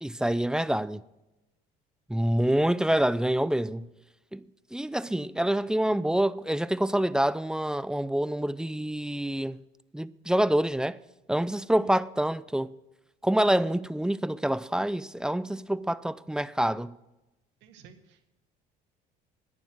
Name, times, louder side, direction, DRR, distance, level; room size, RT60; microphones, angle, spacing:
voice 1, 0.0-1.0 2.1-3.9 4.3-4.4 4.7-9.6 9.9-11.0 11.3-12.7 13.2-16.9, right 1 dB, 5° right, 0.4 m, -26 dB
voice 2, 17.6-18.3, right 7 dB, 70° right, 1.7 m, -54 dB
11.0 x 9.7 x 6.2 m
supercardioid pair, 80°, 19 cm